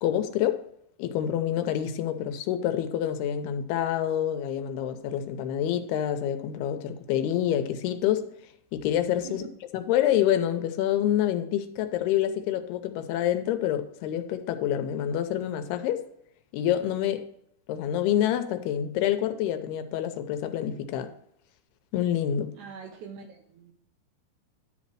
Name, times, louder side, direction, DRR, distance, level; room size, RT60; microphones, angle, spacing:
voice 1, 0.0-0.6 1.0-8.3 8.7-9.4 9.7-16.0 16.5-17.3 17.7-21.1 21.9-22.5, left 11 dB, 85° left, 2.7 m, -27 dB
voice 2, 22.5-23.7, right 5 dB, 75° right, 1.9 m, -43 dB
10.5 x 4.2 x 6.0 m
omnidirectional pair, 4.5 m